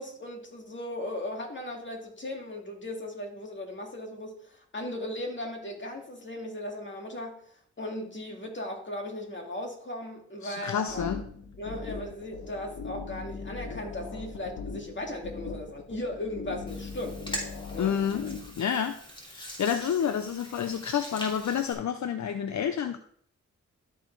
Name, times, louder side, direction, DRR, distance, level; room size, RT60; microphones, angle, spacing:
voice 1, 0.0-7.4 7.8-11.1 11.6-17.2 17.7-18.0, left 1 dB, 40° left, 1 dB, 2.3 m, -37 dB
voice 2, 10.4-11.2 17.8-18.2 18.6-19.0 19.2-23.0, left 8 dB, 70° left, 9 dB, 0.6 m, -29 dB
sound 1, 10.9-18.6, left 5 dB, 85° left, 1.8 m, -40 dB
Hands, 16.7-21.7, equal, 15° left, 2.9 m, -42 dB
12.5 x 4.7 x 4.6 m, 0.63 s
cardioid pair, 70°, 30 cm